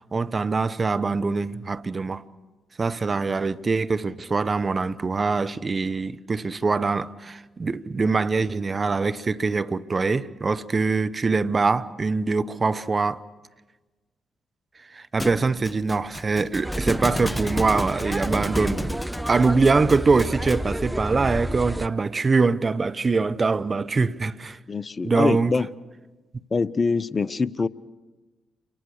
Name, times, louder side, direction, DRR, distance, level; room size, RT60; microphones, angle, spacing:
voice 1, 0.1-2.2 2.8-13.2 14.9-19.0 19.3-24.6 25.0-25.5, right 4 dB, 40° right, 0.9 m, -23 dB
Thump thud, 15.2-20.8, left 1 dB, 15° left, 1.1 m, -33 dB
sound 1, 16.6-21.9, right 1 dB, 10° right, 0.9 m, -30 dB
voice 2, 24.7-25.7 26.5-27.7, left 4 dB, 40° left, 0.8 m, -24 dB
29.0 x 24.0 x 6.5 m
hypercardioid pair, 45°, 0 cm